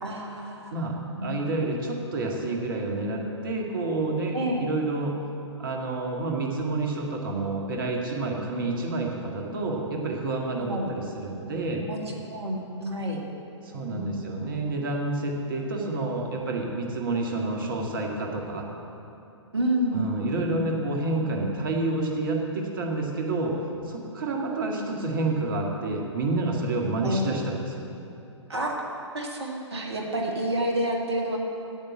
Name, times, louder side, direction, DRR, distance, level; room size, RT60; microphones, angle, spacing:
voice 1, 0.0-0.7 1.2-1.3 4.3-4.7 10.6-10.9 11.9-12.0 12.3-13.2 13.9-14.0 19.5-20.0 20.5-20.6 27.0-27.4 28.5-28.9 29.1-31.4, right 1 dB, 60° right, 0 dB, 1.9 m, -29 dB
voice 2, 0.7-5.1 5.6-11.8 13.6-18.7 19.9-23.6 23.8-27.8, right 2 dB, 45° right, 0 dB, 2.0 m, -29 dB
9.1 x 7.8 x 9.0 m, 2.8 s
figure-of-eight pair, 120°, 15 cm